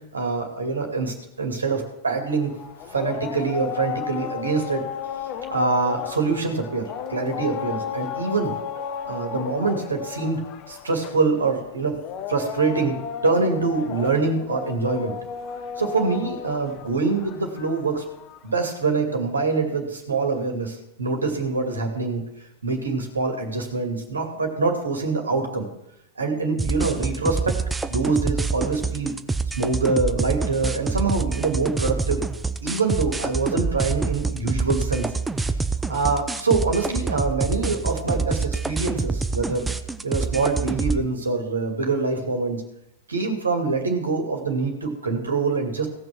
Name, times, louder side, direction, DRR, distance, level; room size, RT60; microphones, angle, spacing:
voice 1, 0.1-2.5 2.9-4.8 5.5-8.5 9.0-12.0 12.3-13.0 13.2-15.2 15.8-18.0 18.4-22.2 22.6-25.7 26.2-27.5 27.9-29.1 29.6-32.2 32.6-35.1 35.9-39.6 40.0-42.6 43.1-45.9, right 4 dB, 75° right, 4 dB, 2.5 m, -25 dB
sound 1, 2.2-18.6, left 8 dB, 40° left, 1.1 m, -34 dB
sound 2, 26.6-41.0, right 4 dB, 10° right, 0.7 m, -26 dB
17.0 x 6.3 x 6.2 m, 0.82 s
figure-of-eight pair, 90°, 0 cm